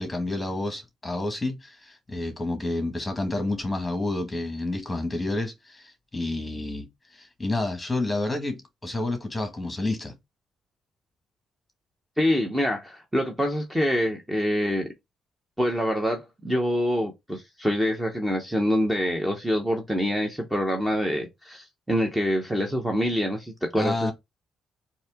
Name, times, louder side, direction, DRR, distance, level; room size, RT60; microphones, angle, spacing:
voice 1, 0.0-6.8 7.1-10.1 23.7-24.1, left 2 dB, 15° left, 1.6 m, -29 dB
voice 2, 12.2-14.9 15.6-24.1, equal, 10° right, 1.0 m, -26 dB
4.1 x 2.8 x 3.6 m
cardioid pair, 90°, 0 cm